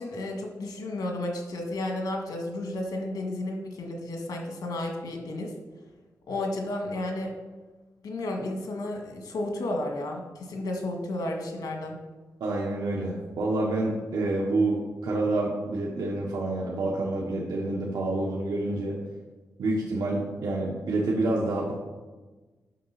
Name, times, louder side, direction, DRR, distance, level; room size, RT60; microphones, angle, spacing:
voice 1, 0.0-5.5 6.3-7.3 8.0-12.0, left 1 dB, 90° left, 2 dB, 1.9 m, -32 dB
voice 2, 12.4-19.0 19.6-21.7, right 2 dB, 80° right, -3 dB, 1.4 m, -28 dB
9.2 x 6.0 x 6.0 m, 1.3 s
wide cardioid pair, 115°, 6 cm